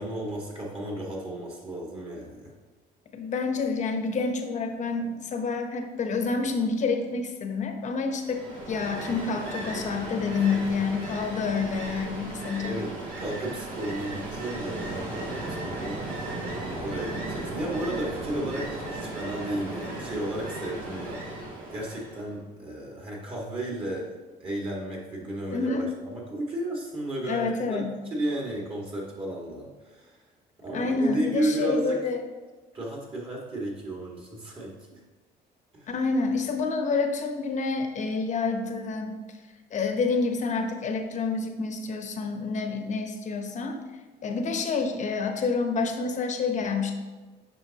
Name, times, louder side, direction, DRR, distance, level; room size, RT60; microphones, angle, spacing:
voice 1, 0.0-2.5 10.3-10.6 12.6-16.1 16.8-21.4 21.7-24.1 24.4-27.9 28.1-30.2 30.6-32.0 32.7-35.0 35.7-35.9, right 1 dB, 35° right, -2 dB, 1.9 m, -33 dB
voice 2, 3.1-12.8 25.5-25.9 27.3-27.9 30.7-32.2 35.9-39.1 39.7-43.8 44.2-46.9, left 4 dB, 45° left, 5 dB, 1.0 m, -28 dB
Ocean, 8.2-22.3, right 2 dB, 85° right, 2.4 m, -36 dB
9.2 x 5.5 x 2.9 m, 1.3 s
cardioid pair, 110°, 17 cm